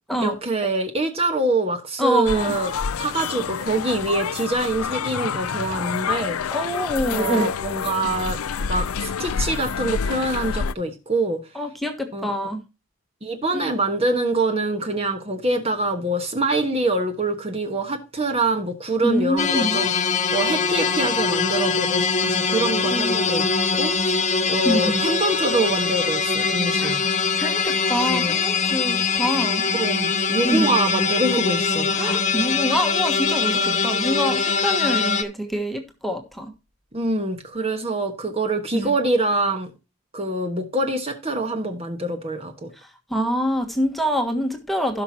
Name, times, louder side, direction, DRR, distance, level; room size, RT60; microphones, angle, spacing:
voice 1, 0.2-6.4 7.1-11.4 12.1-12.3 13.2-19.9 20.3-23.4 23.8-27.0 28.0-28.3 29.7-32.1 33.5-33.8 36.9-39.7 40.1-42.7, right 2 dB, 25° right, 1.3 m, -25 dB
voice 2, 2.0-2.5 6.5-7.5 11.5-12.6 13.5-13.7 19.0-19.8 22.8-23.2 24.6-25.1 26.8-27.0 27.4-29.7 30.4-30.7 32.0-36.5 38.7-38.9 42.8-45.0, equal, ahead, 1.4 m, -25 dB
sound 1, 2.3-10.7, left 6 dB, 80° left, 0.5 m, -28 dB
sound 2, 19.4-35.2, left 5 dB, 30° left, 0.9 m, -22 dB
17.0 x 6.0 x 2.9 m
head